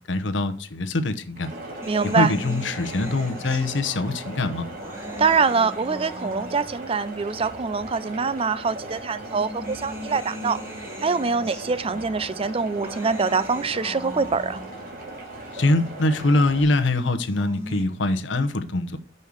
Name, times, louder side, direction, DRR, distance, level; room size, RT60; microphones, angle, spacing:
voice 1, 0.1-1.5 2.1-4.6 15.5-19.0, left 2 dB, 70° left, 0.9 m, -23 dB
sound 1, 1.4-16.6, right 1 dB, 50° right, 2.8 m, -38 dB
sound 2, 1.8-6.9 7.8-7.9 9.0-14.9 17.1-17.8, equal, 15° right, 1.7 m, -39 dB
voice 2, 1.9-2.3 5.2-10.6 11.0-14.6, right 5 dB, 30° right, 0.4 m, -24 dB
6.4 x 5.4 x 7.0 m
head